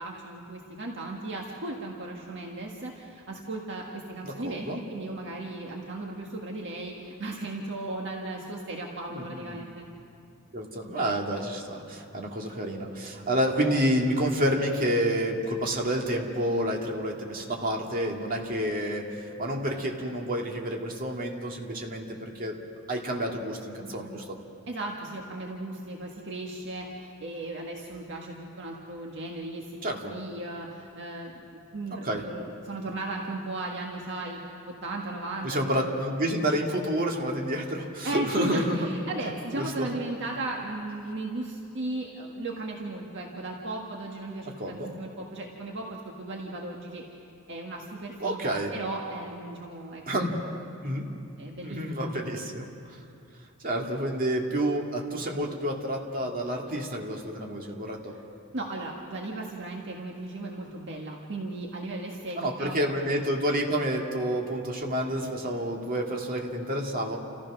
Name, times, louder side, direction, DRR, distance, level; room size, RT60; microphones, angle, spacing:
voice 1, 0.0-9.9 24.7-35.7 38.0-47.2 47.5-50.4 50.8-50.9 51.4-52.1 58.5-62.7, right 2 dB, 55° right, -1 dB, 1.7 m, -36 dB
voice 2, 4.2-4.8 9.1-9.6 10.5-22.5 22.9-24.4 29.8-30.1 31.9-32.2 35.4-38.9 39.5-39.9 44.6-44.9 48.2-48.7 50.1-50.3 50.8-51.1 51.6-53.0 53.6-58.1 62.4-67.2, equal, 40° right, 0 dB, 2.2 m, -29 dB
30.0 x 15.0 x 6.2 m, 2.5 s
head